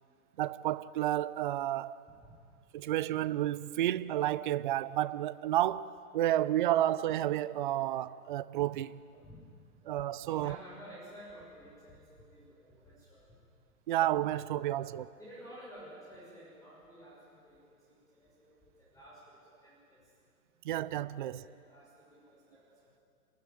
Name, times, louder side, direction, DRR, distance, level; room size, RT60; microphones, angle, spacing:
voice 1, 0.4-2.0 2.7-9.0 9.9-10.6 13.9-15.1 20.6-21.4, right 13 dB, 35° right, 0.5 m, -31 dB
voice 2, 9.1-9.4 10.2-13.3 14.4-14.9 15.2-20.1 21.1-23.0, equal, 5° left, 6.4 m, -53 dB
28.0 x 13.0 x 9.4 m
hypercardioid pair, 125°, 46 cm